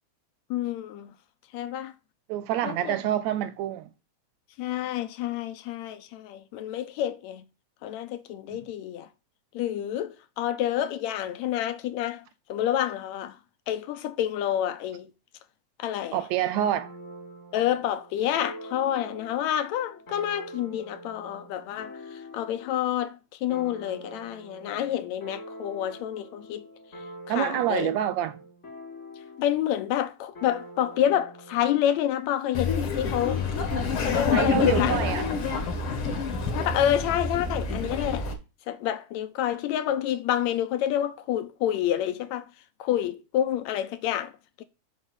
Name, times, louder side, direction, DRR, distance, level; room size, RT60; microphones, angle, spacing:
voice 1, 0.5-1.1 1.5-1.9 2.6-2.9 4.6-7.4 7.8-9.1 9.5-12.2 12.5-13.4 13.7-15.1 15.8-16.2 17.5-26.7 27.3-27.9 29.4-33.4 34.0-35.1 36.5-38.3 38.7-42.5 42.8-44.3 44.6-44.7, left 11 dB, 80° left, 1.8 m, -28 dB
voice 2, 2.3-3.9 8.5-8.6 16.1-16.9 27.3-28.4 34.3-35.3, right 11 dB, 80° right, 1.7 m, -27 dB
sound 1, 16.6-22.8 23.5-29.7 30.3-31.8, equal, 30° left, 1.7 m, -45 dB
Laughter, 32.5-38.3, left 4 dB, 55° left, 2.0 m, -27 dB
6.5 x 3.6 x 6.1 m
omnidirectional pair, 3.4 m